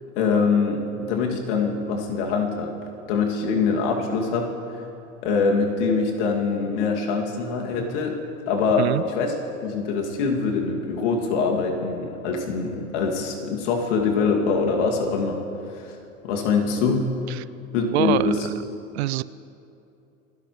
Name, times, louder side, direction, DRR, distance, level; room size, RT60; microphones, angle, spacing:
voice 1, 0.2-2.7 3.1-4.8 5.2-8.2 8.5-15.4 15.7-16.0 16.2-17.0 17.7-18.5, left 4 dB, 55° left, 1 dB, 2.5 m, -24 dB
voice 2, 17.9-18.3 18.9-19.2, right 17 dB, 55° right, 18 dB, 0.5 m, -24 dB
28.5 x 11.5 x 3.2 m, 2.7 s
hypercardioid pair, 100°, 41 cm